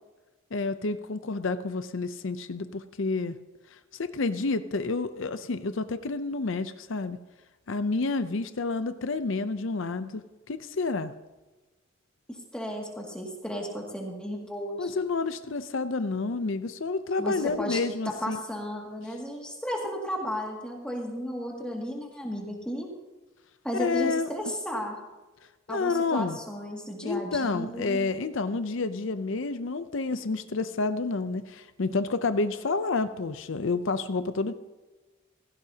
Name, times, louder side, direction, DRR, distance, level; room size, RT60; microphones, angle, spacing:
voice 1, 0.5-3.3 3.9-7.2 7.7-11.1 14.8-18.4 23.7-24.3 25.7-26.4 27.0-34.5, left 3 dB, 65° left, 11 dB, 0.6 m, -29 dB
voice 2, 12.3-15.0 17.2-17.8 18.1-22.9 23.6-25.0 25.7-28.0, equal, 5° left, -1 dB, 2.2 m, -34 dB
17.0 x 15.5 x 2.9 m, 1.1 s
head